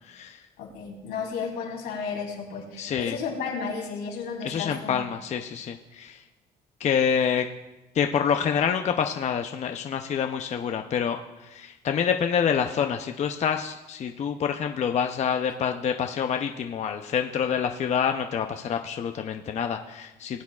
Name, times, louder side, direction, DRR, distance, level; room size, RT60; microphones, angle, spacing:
voice 1, 0.1-0.4 2.8-3.2 4.4-6.2 6.8-7.5 7.9-20.4, left 7 dB, 40° left, 5 dB, 0.6 m, -27 dB
voice 2, 0.6-5.0, left 5 dB, 90° left, -2 dB, 3.0 m, -33 dB
19.5 x 8.4 x 2.4 m, 1.0 s
cardioid pair, 110°, 17 cm